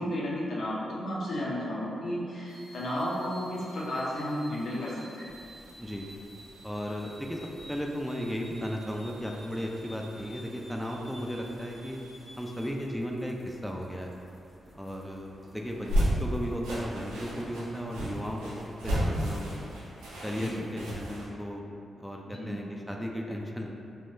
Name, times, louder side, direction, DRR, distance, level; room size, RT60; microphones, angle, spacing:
voice 1, 0.0-5.3 20.4-20.5 22.3-22.6, equal, 70° left, -6 dB, 0.6 m, -33 dB
sound 1, 2.5-12.7, right 1 dB, 70° right, 1.1 m, -52 dB
sound 2, 5.2-21.1, equal, 25° right, 0.7 m, -47 dB
voice 2, 6.6-7.4 7.7-12.0 12.4-14.1 14.8-19.6 20.2-21.7 22.0-23.7, equal, ahead, 0 dB, 0.4 m, -35 dB
sound 3, 15.7-21.2, equal, 85° right, 0.5 m, -32 dB
3.5 x 2.2 x 2.6 m, 2.5 s
hypercardioid pair, 40°, 0 cm